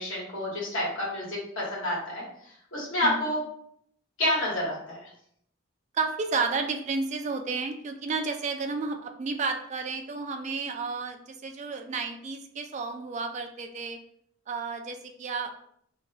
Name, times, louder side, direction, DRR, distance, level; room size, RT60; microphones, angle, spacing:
voice 1, 0.0-2.2 2.7-3.4 4.2-5.1, left 1 dB, 75° left, -4 dB, 1.4 m, -29 dB
voice 2, 5.9-14.0 14.5-15.5, right 4 dB, 35° right, 6 dB, 0.3 m, -32 dB
2.8 x 2.2 x 4.1 m, 0.69 s
head